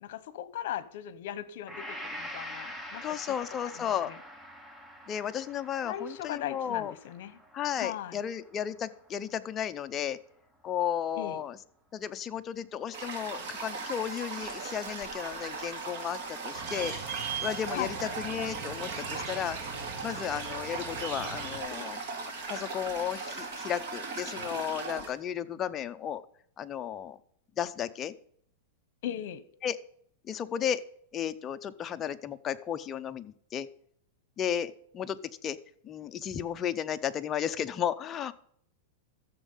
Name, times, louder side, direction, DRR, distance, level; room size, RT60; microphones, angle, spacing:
voice 1, 0.0-3.1 3.6-4.2 5.8-7.4 7.8-8.2 11.2-11.4 17.7-18.0 29.0-29.4, left 11 dB, 60° left, 16 dB, 1.0 m, -38 dB
Gong, 1.7-9.7, equal, 5° right, 0.9 m, -45 dB
voice 2, 3.0-4.1 5.1-6.9 7.5-10.2 10.6-11.6 11.9-19.6 20.0-22.0 22.5-26.2 26.6-27.2 27.6-28.1 29.6-29.8 30.2-30.8 31.1-33.7 34.4-35.6 35.8-38.3, left 9 dB, 20° left, 10 dB, 0.5 m, -34 dB
Toilet flush, 12.9-25.1, right 4 dB, 50° right, 2.9 m, -38 dB
sound 1, 16.5-21.6, right 6 dB, 35° right, 2.0 m, -40 dB
13.5 x 7.2 x 5.6 m, 0.65 s
supercardioid pair, 160°, 0 cm